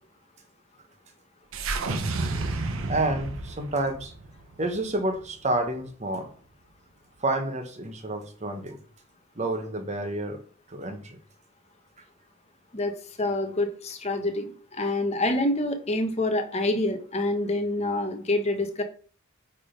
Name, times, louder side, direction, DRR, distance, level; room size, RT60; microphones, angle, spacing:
sound 1, 1.5-5.8, right 3 dB, 70° right, 0.8 m, -32 dB
voice 1, 2.9-4.1 4.6-6.3 7.2-8.8 9.4-10.4 10.7-11.2, right 2 dB, 30° right, 6 dB, 1.0 m, -29 dB
voice 2, 13.2-18.8, left 2 dB, 30° left, 5 dB, 1.0 m, -27 dB
8.9 x 3.7 x 5.1 m, 0.43 s
head